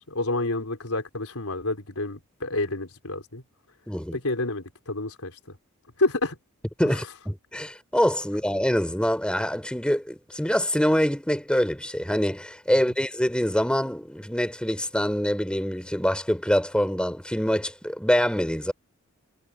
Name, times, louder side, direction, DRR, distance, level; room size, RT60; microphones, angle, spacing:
voice 1, 0.0-3.4 4.1-5.4 6.0-6.4 6.8-7.0, left 2 dB, 85° left, 4.2 m, -29 dB
voice 2, 3.9-4.2 6.8-18.7, equal, 5° left, 3.0 m, -25 dB
head